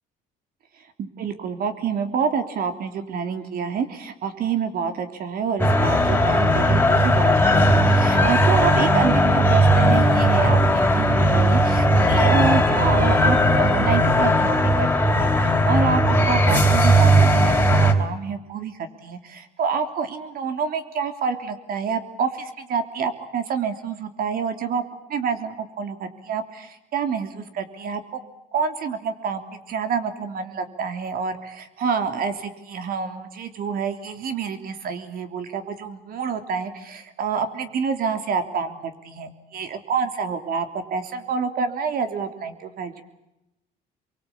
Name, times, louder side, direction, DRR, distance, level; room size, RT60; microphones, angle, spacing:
voice 1, 1.0-14.9 15.2-24.8 25.1-28.2 28.5-43.0, right 6 dB, 60° right, 7 dB, 3.3 m, -27 dB
sound 1, 5.6-17.9, equal, 10° left, 3.5 m, -17 dB
25.0 x 23.5 x 8.6 m, 0.94 s
cardioid pair, 110°, 17 cm